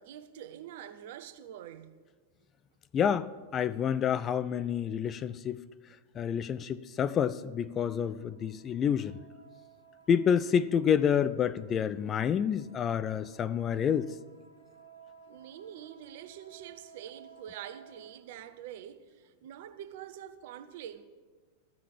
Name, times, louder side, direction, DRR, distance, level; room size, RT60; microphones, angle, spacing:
voice 1, 0.0-2.0 15.3-21.0, right 10 dB, 50° right, 0.7 m, -45 dB
voice 2, 2.9-5.6 6.2-9.2 10.1-14.1, left 8 dB, 25° left, 0.3 m, -28 dB
sound 1, 7.3-18.2, right 6 dB, 90° right, 1.7 m, -58 dB
14.0 x 6.5 x 7.3 m
figure-of-eight pair, 90°, 0 cm